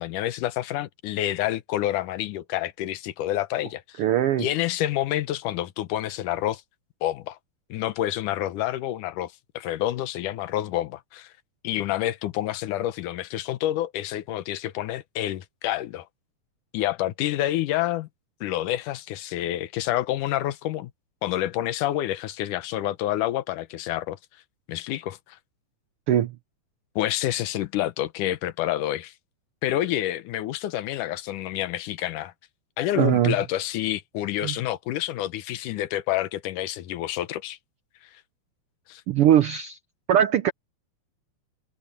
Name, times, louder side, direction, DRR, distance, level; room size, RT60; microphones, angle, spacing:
voice 1, 0.0-4.0 4.4-6.6 7.0-7.4 7.7-11.3 11.6-16.1 16.7-18.1 18.4-20.9 21.2-24.2 24.7-25.4 27.0-29.1 29.6-32.3 32.8-37.6 38.9-39.0, left 13 dB, 90° left, 2.5 m, -28 dB
voice 2, 4.0-4.5 26.1-26.3 33.0-33.4 34.4-34.5 39.1-39.8 40.1-40.5, right 10 dB, 80° right, 1.2 m, -20 dB
omnidirectional pair, 3.5 m